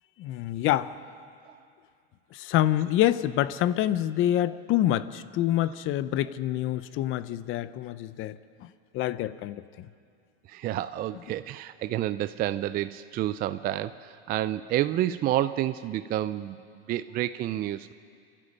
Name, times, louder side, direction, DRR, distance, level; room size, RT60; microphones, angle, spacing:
voice 1, 0.2-0.9 2.3-9.9, left 13 dB, 40° left, 15 dB, 0.7 m, -27 dB
voice 2, 10.5-16.6 16.9-17.9, right 13 dB, 30° right, 12 dB, 0.4 m, -29 dB
27.5 x 12.5 x 8.9 m, 2.3 s
supercardioid pair, 130°, 32 cm